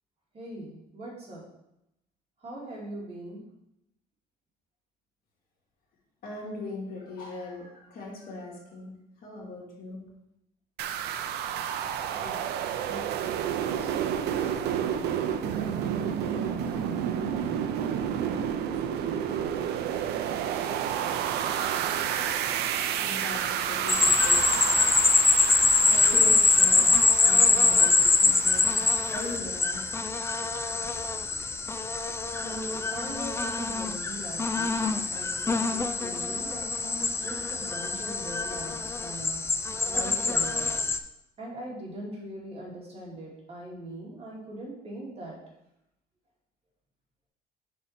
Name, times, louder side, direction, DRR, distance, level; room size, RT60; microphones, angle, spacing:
voice 1, 0.3-1.4 2.4-3.4 12.2-13.0 13.7-19.5 32.4-39.4 39.9-40.9 41.4-45.4, right 1 dB, 35° right, -4 dB, 2.4 m, -42 dB
voice 2, 6.2-8.9 9.2-10.0 23.0-24.8 25.9-26.9 27.2-29.9, left 2 dB, 60° left, -3 dB, 2.2 m, -40 dB
sound 1, 10.8-29.4, right 9 dB, 80° right, 0.5 m, -30 dB
sound 2, 23.9-41.0, left 4 dB, 15° left, 0.4 m, -24 dB
5.4 x 4.2 x 5.8 m, 0.85 s
cardioid pair, 110°, 17 cm